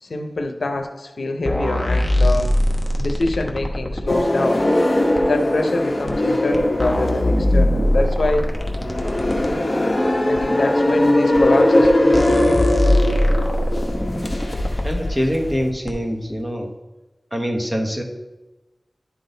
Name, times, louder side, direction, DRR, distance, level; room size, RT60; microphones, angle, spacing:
voice 1, 0.0-2.5 2.9-4.6 5.2-8.5 10.2-12.7, left 2 dB, 80° left, 5 dB, 0.7 m, -24 dB
sound 1, 1.5-4.2 5.2-5.3 6.1-6.2 6.5-9.5 10.4-10.5 11.4-11.5 11.8-11.9 12.1-14.9 15.9-16.0, left 1 dB, 10° left, 0.9 m, -21 dB
sound 2, 4.1-15.7, left 1 dB, 35° left, 0.9 m, -20 dB
voice 2, 14.8-16.7 17.3-18.0, equal, 10° right, 2 dB, 1.1 m, -24 dB
11.0 x 3.8 x 3.9 m, 1.1 s
wide cardioid pair, 85°, 0 cm